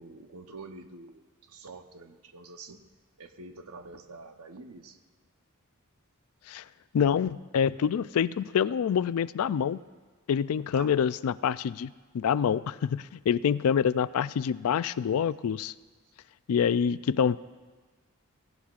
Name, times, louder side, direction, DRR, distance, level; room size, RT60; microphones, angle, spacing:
voice 1, 0.0-2.9 3.2-5.0 10.7-11.0, right 3 dB, 90° right, 7 dB, 0.9 m, -46 dB
voice 2, 6.9-9.8 10.3-15.7 16.5-17.4, left 7 dB, 85° left, 17 dB, 0.3 m, -26 dB
17.0 x 16.5 x 2.4 m, 1.3 s
head